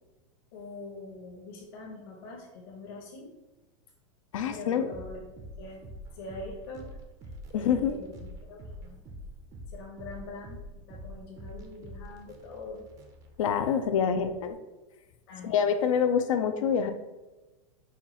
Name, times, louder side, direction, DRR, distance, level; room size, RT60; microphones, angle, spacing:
voice 1, 0.5-3.3 4.5-5.8 6.1-7.0 7.5-9.1 9.7-12.9 14.0-14.3 15.3-15.6, left 2 dB, 45° left, -2 dB, 1.0 m, -44 dB
voice 2, 4.3-4.9 7.5-8.0 13.4-14.6 15.4-16.9, left 7 dB, 80° left, 8 dB, 0.4 m, -26 dB
sound 1, 4.9-14.5, equal, 20° right, 0.4 m, -46 dB
5.6 x 2.3 x 2.9 m, 1.1 s
supercardioid pair, 165°, 16 cm